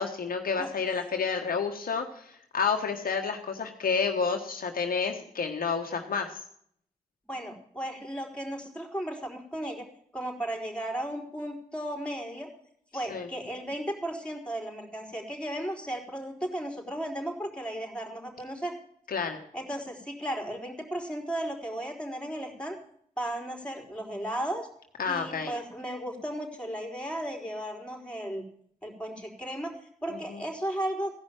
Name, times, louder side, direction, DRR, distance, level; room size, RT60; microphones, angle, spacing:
voice 1, 0.0-6.4 13.1-13.3 19.1-19.4 25.0-25.5, left 5 dB, 70° left, 3 dB, 1.4 m, -30 dB
voice 2, 7.3-9.8 10.1-12.5 12.9-18.7 19.5-22.8 23.2-24.7 25.1-28.4 28.8-31.1, right 1 dB, 5° left, 2 dB, 4.3 m, -35 dB
15.5 x 5.5 x 9.1 m, 0.66 s
supercardioid pair, 40°, 15 cm